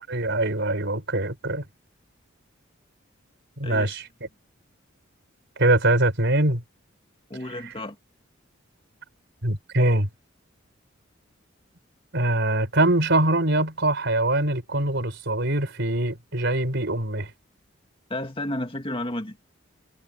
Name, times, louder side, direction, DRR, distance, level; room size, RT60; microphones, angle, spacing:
voice 1, 0.1-1.6 3.6-4.0 5.6-6.6 9.4-10.1 12.1-17.3, right 2 dB, 60° right, 5.0 m, -23 dB
voice 2, 3.6-4.0 7.3-8.0 18.1-19.4, left 1 dB, 25° left, 2.3 m, -32 dB
head